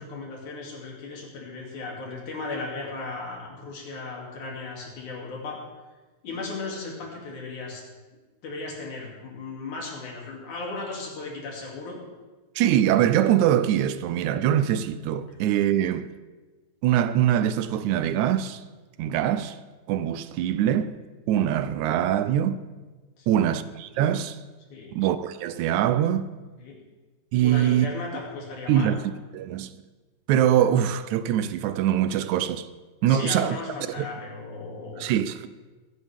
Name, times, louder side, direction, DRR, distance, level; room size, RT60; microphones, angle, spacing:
voice 1, 0.1-5.6 6.2-7.8 8.4-12.0 23.2-23.4 24.7-25.0 26.6-26.8 27.4-28.9 33.1-35.1, left 3 dB, 85° left, 4.3 m, -36 dB
voice 2, 12.6-16.1 16.8-18.6 19.0-19.6 19.9-20.9 21.3-22.6 23.3-24.4 24.9-26.3 27.3-27.9 28.7-29.0 29.3-29.7 30.3-32.7 33.0-33.6 33.9-34.0 35.0-35.5, right 10 dB, 80° right, 2.0 m, -23 dB
23.5 x 10.0 x 3.6 m
omnidirectional pair, 3.4 m